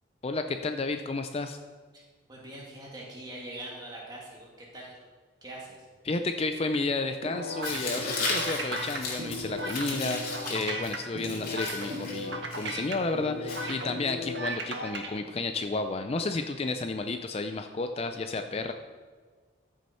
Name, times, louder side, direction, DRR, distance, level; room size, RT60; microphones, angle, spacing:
voice 1, 0.2-1.6 6.0-18.7, left 3 dB, 30° left, 7 dB, 0.4 m, -32 dB
voice 2, 2.3-5.0 5.4-5.9, right 1 dB, 20° right, -3 dB, 2.3 m, -43 dB
sound 1, 7.2-15.1, equal, 60° right, 1.4 m, -36 dB
Tearing, 7.6-14.2, left 3 dB, 50° left, 2.7 m, -36 dB
14.0 x 6.4 x 4.3 m, 1.5 s
head